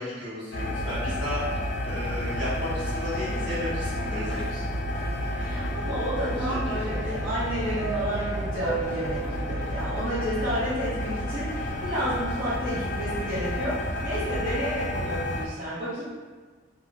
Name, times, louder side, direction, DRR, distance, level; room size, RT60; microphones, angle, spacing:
voice 1, 0.0-1.4 1.8-4.6 6.5-6.6 6.8-7.3, left 1 dB, 70° right, -11 dB, 1.5 m, -34 dB
sound 1, 0.5-15.5, left 1 dB, 70° left, 0.4 m, -31 dB
Subway metro underground, 1.9-14.3, right 3 dB, 5° left, 0.3 m, -39 dB
voice 2, 5.3-16.0, equal, 50° right, -15 dB, 0.9 m, -31 dB
2.8 x 2.0 x 2.7 m, 1.4 s
head